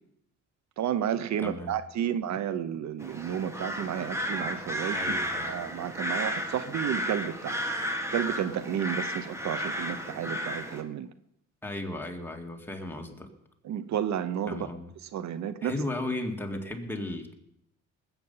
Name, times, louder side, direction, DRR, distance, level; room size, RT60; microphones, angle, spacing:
voice 1, 0.8-5.0 5.5-7.6 8.1-11.1 13.6-14.7 15.1-15.7, right 9 dB, 65° right, 0.7 m, -31 dB
voice 2, 1.4-1.7 4.9-5.5 11.6-13.3 14.5-14.9 15.6-17.3, left 1 dB, 5° left, 2.1 m, -35 dB
sound 1, 3.0-10.8, equal, 10° right, 1.8 m, -33 dB
20.5 x 8.2 x 5.5 m
cardioid pair, 90°, 30 cm